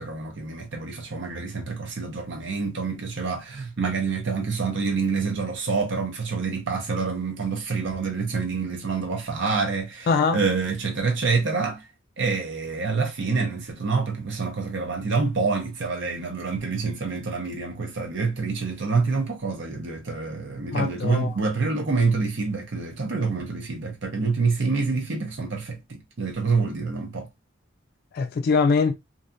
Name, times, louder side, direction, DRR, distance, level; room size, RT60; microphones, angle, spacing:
voice 1, 0.0-11.9 12.2-27.3, right 4 dB, 65° right, 0.7 m, -27 dB
voice 2, 10.1-10.4 20.7-21.3 28.1-28.9, left 4 dB, 55° left, 0.3 m, -22 dB
2.6 x 2.3 x 2.5 m
head